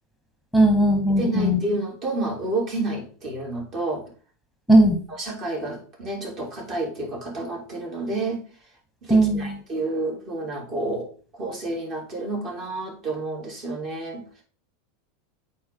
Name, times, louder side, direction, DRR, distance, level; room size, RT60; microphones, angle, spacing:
voice 1, 0.5-1.6 4.7-5.0 9.1-9.5, right 1 dB, 5° right, 2 dB, 1.4 m, -17 dB
voice 2, 1.2-4.0 5.1-8.4 9.0-14.2, right 2 dB, 45° right, 0 dB, 3.1 m, -30 dB
8.5 x 4.5 x 3.7 m, 0.40 s
hypercardioid pair, 85°, 0 cm